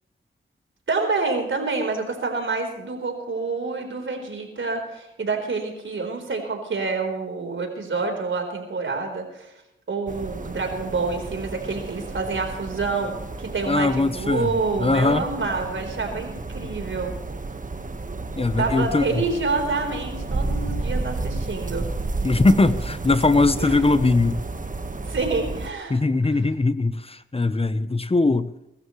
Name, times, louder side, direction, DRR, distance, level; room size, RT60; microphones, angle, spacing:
voice 1, 0.9-9.5 9.9-17.1 18.6-21.9 23.6-23.8 25.0-26.4, right 3 dB, 70° right, 4.2 m, -27 dB
sound 1, 10.1-25.7, right 3 dB, 40° right, 1.5 m, -32 dB
voice 2, 13.7-14.5 14.8-15.2 18.4-19.2 22.2-24.4 25.9-28.5, left 3 dB, 30° left, 1.0 m, -20 dB
23.0 x 13.0 x 3.2 m
cardioid pair, 50°, 21 cm